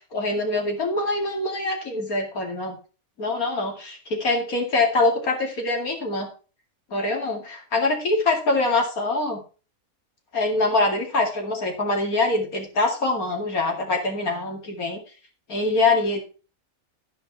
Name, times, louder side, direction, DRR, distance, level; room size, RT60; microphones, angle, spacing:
voice 1, 0.1-2.8 3.2-4.0 4.2-6.3 6.9-9.4 10.3-15.0 15.5-16.2, left 2 dB, 85° left, 2 dB, 2.9 m, -24 dB
13.5 x 5.3 x 5.7 m, 0.35 s
omnidirectional pair, 1.5 m